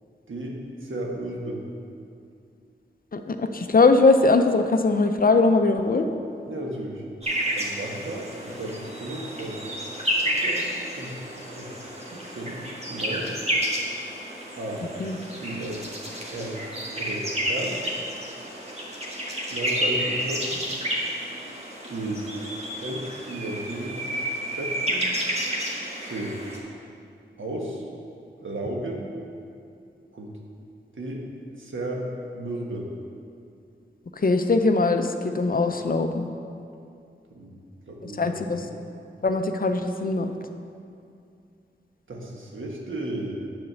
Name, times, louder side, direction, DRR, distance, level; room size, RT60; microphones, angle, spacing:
voice 1, 0.3-1.6 6.5-7.0 7.5-9.6 10.2-11.2 11.5-11.7 12.0-13.3 14.5-14.9 15.4-15.8 16.3-16.6 17.0-17.8 19.5-20.7 21.9-22.3 22.8-24.0 24.5-25.1 26.0-26.4 27.4-27.9 28.4-29.1 30.1-30.3 31.0-31.3 31.6-32.1 32.3-32.9 37.3-38.7 42.1-43.3, right 1 dB, 80° right, -1 dB, 1.3 m, -34 dB
voice 2, 3.1-6.1 15.0-15.2 34.2-36.3 38.2-38.6 39.2-40.3, left 3 dB, 45° left, 6 dB, 0.6 m, -21 dB
sound 1, 7.2-26.6, equal, 30° right, 1.5 m, -30 dB
9.2 x 4.3 x 6.7 m, 2.4 s
wide cardioid pair, 80°, 20 cm